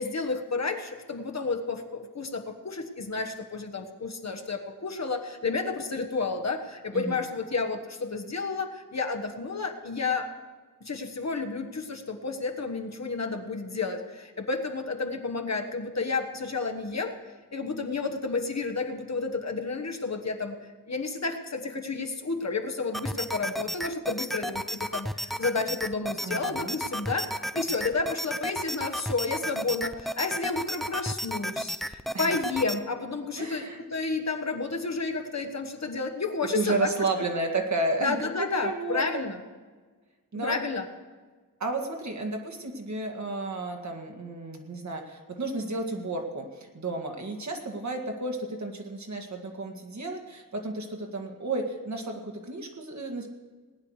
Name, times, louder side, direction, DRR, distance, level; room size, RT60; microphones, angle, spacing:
voice 1, 0.0-10.3 10.8-17.1 17.5-27.3 27.5-37.1 38.0-39.4 40.3-40.8, left 4 dB, 50° left, 4 dB, 1.3 m, -31 dB
sound 1, 22.9-32.8, equal, ahead, 0.3 m, -33 dB
voice 2, 26.2-26.7 32.1-32.4 33.4-33.8 36.5-38.2 38.5-39.2 40.3-40.6 41.6-53.3, right 2 dB, 50° right, 3 dB, 2.0 m, -32 dB
19.0 x 9.9 x 4.9 m, 1.4 s
wide cardioid pair, 95°, 35 cm